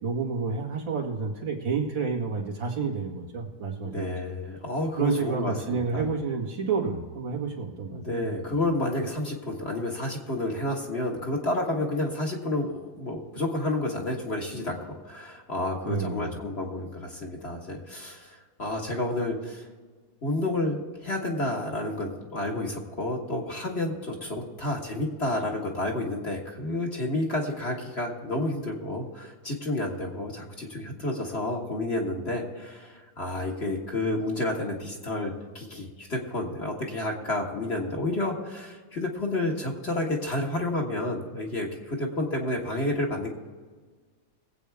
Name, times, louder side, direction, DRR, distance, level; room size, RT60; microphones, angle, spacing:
voice 1, 0.0-4.1 5.0-8.3 15.9-16.3, right 5 dB, 85° right, -2 dB, 2.9 m, -29 dB
voice 2, 3.8-6.1 7.9-19.7 20.2-43.3, left 1 dB, 35° left, -1 dB, 1.8 m, -30 dB
22.0 x 8.4 x 3.5 m, 1.5 s
omnidirectional pair, 2.0 m